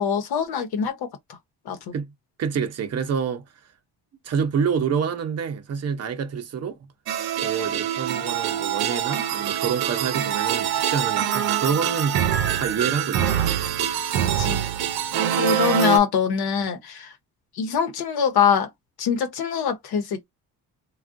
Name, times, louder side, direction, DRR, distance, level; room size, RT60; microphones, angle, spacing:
voice 1, 0.0-1.4 1.6-1.9 14.4-14.7 15.4-17.1 17.5-18.7 19.0-20.3, left 7 dB, 85° left, 0.9 m, -23 dB
voice 2, 2.4-3.4 4.2-6.8 7.4-12.3 12.5-13.4, right 6 dB, 40° right, 0.7 m, -27 dB
sound 1, 7.1-16.0, right 10 dB, 80° right, 0.7 m, -24 dB
3.5 x 2.3 x 2.5 m
cardioid pair, 165°, 37 cm